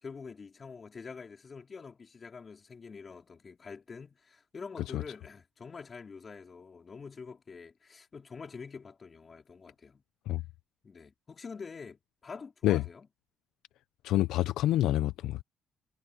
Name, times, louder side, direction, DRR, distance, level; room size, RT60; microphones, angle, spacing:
voice 1, 0.0-10.0 10.8-13.1, left 5 dB, 40° left, 4.3 m, -46 dB
voice 2, 14.0-15.4, left 14 dB, 80° left, 0.7 m, -27 dB
supercardioid pair, 70°, 0 cm